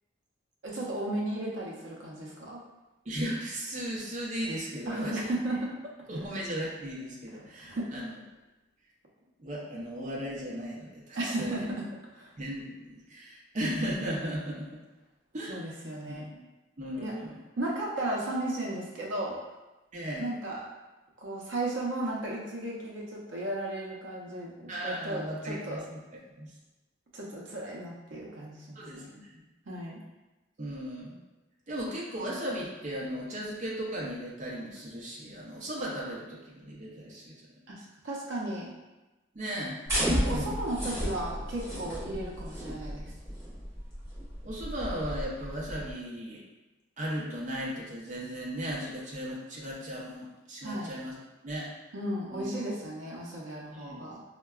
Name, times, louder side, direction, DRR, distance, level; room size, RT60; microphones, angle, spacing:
voice 1, 0.6-2.6 4.9-5.8 6.2-6.3 7.3-7.9 11.1-11.8 12.1-12.3 15.5-16.2 17.0-17.1 17.6-19.4 20.2-20.6 21.2-25.8 27.1-29.1 29.7-30.0 37.7-37.8 38.0-38.7 40.0-43.1 50.6-50.9 51.9-54.2, right 1 dB, 85° right, -3 dB, 0.6 m, -35 dB
voice 2, 3.0-5.2 6.1-8.1 9.4-11.7 12.4-14.8 15.3-15.6 16.1-16.4 16.8-17.4 19.9-20.3 24.7-26.0 26.3-26.5 28.7-29.4 30.6-31.2 31.7-37.3 37.8-37.9 39.3-39.8 40.3-40.5 44.4-46.4 47.0-51.1 51.4-51.7 52.3-52.4 53.7-54.0, equal, 40° right, -5 dB, 0.6 m, -36 dB
sound 1, 39.9-45.9, equal, 15° right, 1.0 m, -33 dB
4.5 x 2.2 x 2.3 m, 1.1 s
head